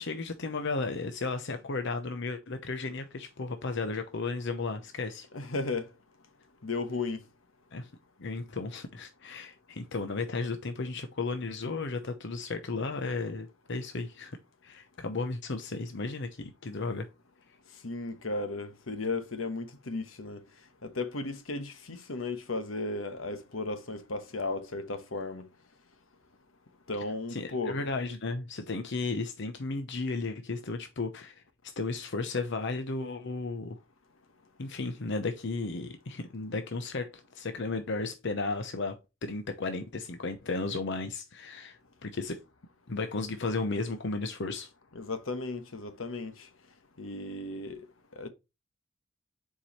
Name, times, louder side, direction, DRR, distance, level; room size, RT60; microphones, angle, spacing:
voice 1, 0.0-5.3 7.7-7.9 8.2-17.1 27.3-33.8 34.6-42.4 42.9-44.7, left 3 dB, 60° left, 0.8 m, -34 dB
voice 2, 5.3-5.9 6.6-7.2 17.8-20.4 20.8-25.4 26.9-27.8 44.9-46.3 47.0-47.8 48.1-48.3, left 3 dB, 80° left, 1.1 m, -35 dB
7.2 x 4.7 x 3.1 m
head